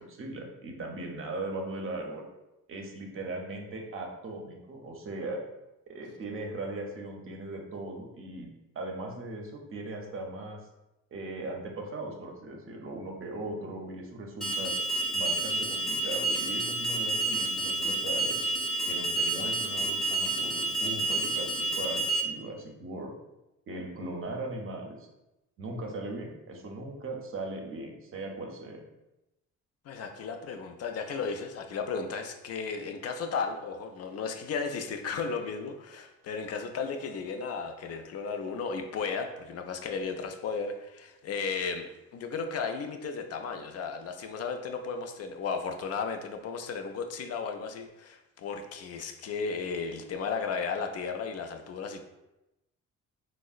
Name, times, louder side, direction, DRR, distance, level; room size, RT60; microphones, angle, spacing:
voice 1, 0.0-2.2 2.7-5.4 5.9-10.6 11.1-14.7 15.1-18.4 18.9-23.1 23.7-25.0 25.6-28.8, right 2 dB, 45° right, 1 dB, 0.6 m, -38 dB
Alarm, 14.4-22.2, right 2 dB, ahead, 0.5 m, -29 dB
voice 2, 29.9-52.0, left 5 dB, 55° left, 6 dB, 0.4 m, -34 dB
3.6 x 2.0 x 2.4 m, 0.95 s
cardioid pair, 90°, 30 cm